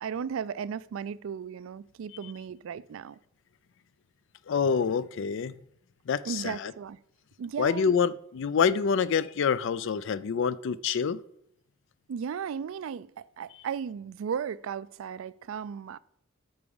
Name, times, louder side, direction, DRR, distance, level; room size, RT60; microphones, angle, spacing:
voice 1, 0.0-3.2 6.3-7.0 7.4-7.9 12.1-16.0, right 7 dB, 70° right, 0.3 m, -35 dB
voice 2, 4.5-5.6 6.1-6.7 7.6-11.2, left 6 dB, 65° left, 0.4 m, -27 dB
8.6 x 4.8 x 7.0 m
head